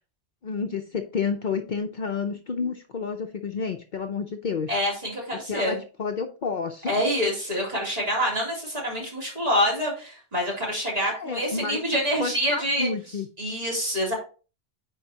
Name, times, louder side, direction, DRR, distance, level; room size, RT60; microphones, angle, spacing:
voice 1, 0.4-4.7 5.5-6.9 11.1-13.3, left 5 dB, 55° left, 6 dB, 0.7 m, -30 dB
voice 2, 4.7-5.8 6.9-12.9 13.4-14.1, equal, 35° right, -4 dB, 3.3 m, -26 dB
8.9 x 4.8 x 2.8 m, 0.35 s
omnidirectional pair, 1.1 m